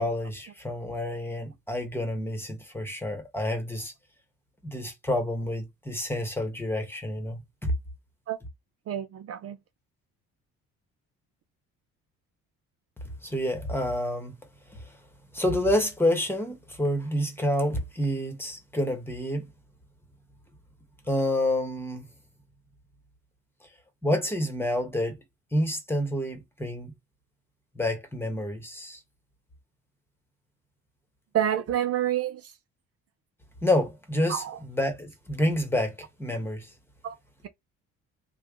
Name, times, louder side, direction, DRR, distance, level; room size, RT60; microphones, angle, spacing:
voice 1, 0.0-3.9 4.6-7.7 13.2-14.3 14.7-14.9 15.3-19.5 21.1-22.1 24.0-25.2 25.5-26.9 27.7-29.0 33.6-36.7, left 1 dB, 5° left, 1.2 m, -28 dB
voice 2, 8.9-9.6 31.3-32.5 34.3-34.6 37.0-37.2, right 11 dB, 50° right, 0.5 m, -28 dB
3.3 x 2.3 x 3.6 m
cardioid pair, 90°, 32 cm